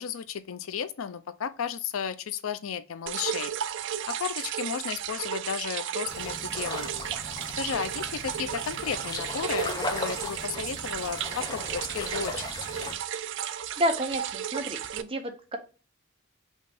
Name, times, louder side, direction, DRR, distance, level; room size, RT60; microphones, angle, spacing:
voice 1, 0.0-3.5 4.1-6.9 7.5-12.5, left 7 dB, 90° left, 0.5 m, -34 dB
sound 1, 3.1-15.0, right 9 dB, 60° right, 0.3 m, -34 dB
sound 2, 6.1-12.9, left 2 dB, 20° left, 0.7 m, -37 dB
voice 2, 13.8-15.6, equal, 25° right, 0.7 m, -30 dB
5.4 x 2.5 x 3.4 m
head